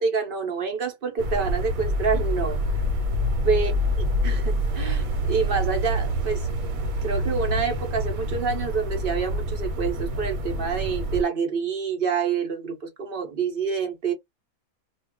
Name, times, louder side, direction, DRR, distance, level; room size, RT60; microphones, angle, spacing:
voice 1, 0.0-2.6 3.4-3.7 4.2-6.5 7.0-14.1, right 6 dB, 50° right, 0.7 m, -27 dB
sound 1, 1.2-11.2, equal, 70° right, 1.2 m, -26 dB
2.4 x 2.3 x 3.6 m
omnidirectional pair, 1.5 m